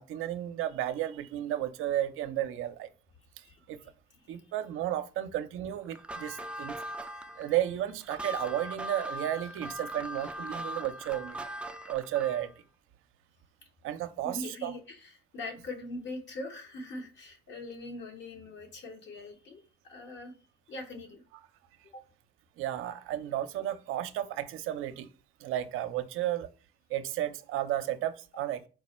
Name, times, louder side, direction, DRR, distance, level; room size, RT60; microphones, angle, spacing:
voice 1, 0.0-2.9 3.4-3.8 4.3-7.0 7.4-11.4 11.9-12.5 13.8-14.7 22.6-25.1 25.4-26.5 26.9-28.6, right 12 dB, 75° right, 0.5 m, -33 dB
sound 1, 5.9-12.5, equal, 5° right, 0.4 m, -40 dB
voice 2, 14.2-20.3 20.7-21.2 21.9-22.0, left 2 dB, 60° left, 1.3 m, -42 dB
4.5 x 2.1 x 4.2 m
supercardioid pair, 75°, 21 cm